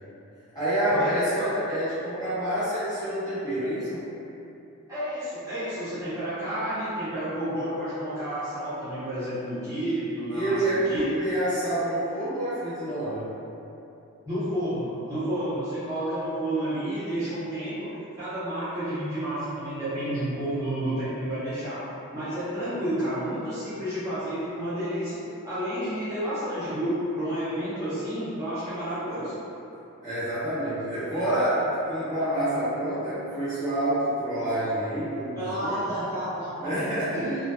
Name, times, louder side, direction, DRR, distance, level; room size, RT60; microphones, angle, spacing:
voice 1, 0.5-4.0 10.3-13.3 30.0-35.8 36.6-37.2, right 1 dB, 15° left, -16 dB, 1.0 m, -27 dB
voice 2, 4.9-10.6 10.9-11.0 14.2-21.8 22.1-29.3 35.3-36.7 37.1-37.4, right 1 dB, 15° right, -17 dB, 0.9 m, -30 dB
2.6 x 2.2 x 2.4 m, 2.8 s
head